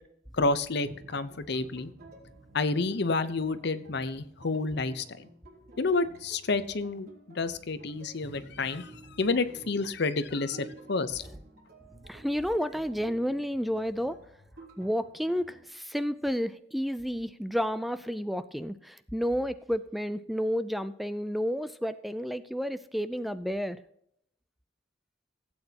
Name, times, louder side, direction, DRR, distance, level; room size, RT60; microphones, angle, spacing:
voice 1, 0.3-1.9 2.5-5.3 5.8-8.9 9.2-11.2, left 3 dB, 65° left, 13 dB, 0.8 m, -29 dB
sound 1, 0.8-15.6, right 2 dB, 60° right, 3.5 m, -52 dB
voice 2, 12.1-14.2 14.8-23.8, equal, ahead, 12 dB, 0.4 m, -31 dB
16.0 x 8.8 x 2.9 m, 0.71 s
head